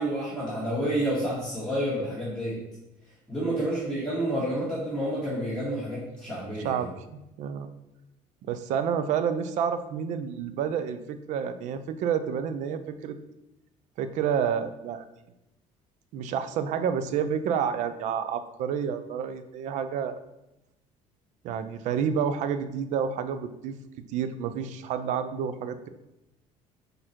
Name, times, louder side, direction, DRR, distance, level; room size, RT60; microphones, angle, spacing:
voice 1, 0.0-2.6 3.3-6.9, right 1 dB, 5° right, -12 dB, 1.9 m, -29 dB
voice 2, 6.6-7.7 8.4-13.2 14.0-15.0 16.1-20.1 21.4-23.7 24.1-25.9, right 7 dB, 65° right, 11 dB, 0.5 m, -29 dB
4.9 x 4.4 x 4.4 m, 0.93 s
cardioid pair, 140°, 14 cm